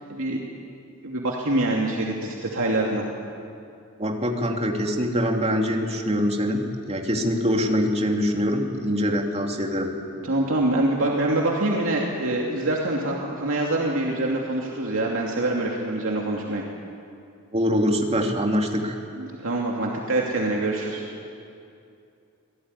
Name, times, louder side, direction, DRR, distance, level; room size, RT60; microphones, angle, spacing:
voice 1, 0.1-0.4 1.0-3.1 10.2-16.6 19.2-21.0, right 2 dB, 65° right, -2 dB, 2.8 m, -25 dB
voice 2, 4.0-6.6 6.9-9.9 17.5-19.0, equal, 30° right, 2 dB, 2.6 m, -24 dB
27.0 x 18.0 x 9.8 m, 2.5 s
head